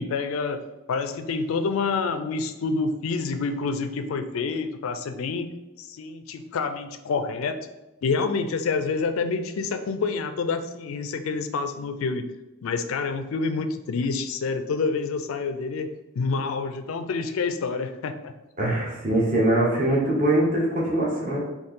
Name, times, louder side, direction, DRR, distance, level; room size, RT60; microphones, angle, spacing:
voice 1, 0.0-5.5 5.8-7.6 8.0-12.2 12.6-15.9 16.1-18.3, left 4 dB, 90° left, 8 dB, 0.4 m, -28 dB
voice 2, 18.6-21.4, right 1 dB, 40° right, -4 dB, 1.2 m, -22 dB
4.4 x 3.0 x 3.7 m, 1.0 s
head